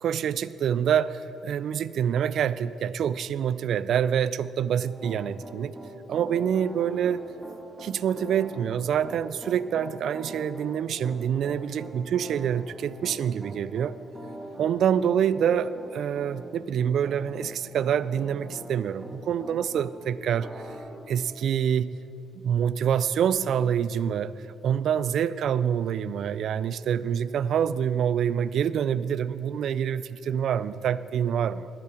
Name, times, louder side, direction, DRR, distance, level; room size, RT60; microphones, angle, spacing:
voice 1, 0.0-5.7 6.1-7.2 7.8-13.9 14.6-20.5 21.1-21.9 22.4-24.3 24.6-31.7, right 8 dB, 70° right, 17 dB, 0.3 m, -26 dB
Piano, 4.8-19.9 20.4-20.8, right 1 dB, 15° right, 1.6 m, -43 dB
19.0 x 7.5 x 4.4 m, 2.9 s
cardioid pair, 90°, 0 cm